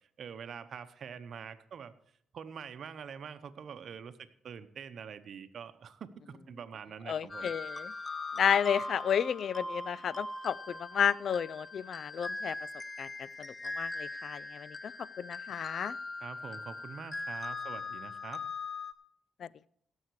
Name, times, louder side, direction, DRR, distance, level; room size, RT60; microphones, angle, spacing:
voice 1, 0.2-1.9 2.3-7.5 16.2-18.4, right 7 dB, 55° right, 11 dB, 0.9 m, -45 dB
voice 2, 7.1-7.9 8.4-12.5 13.0-13.1 13.4-13.5 13.8-14.8 15.2-15.9 19.4-19.5, left 8 dB, 60° left, 22 dB, 0.4 m, -31 dB
sound 1, 7.3-18.9, left 3 dB, 20° left, 0.9 m, -41 dB
17.0 x 7.2 x 4.7 m, 0.68 s
cardioid pair, 90°, 0 cm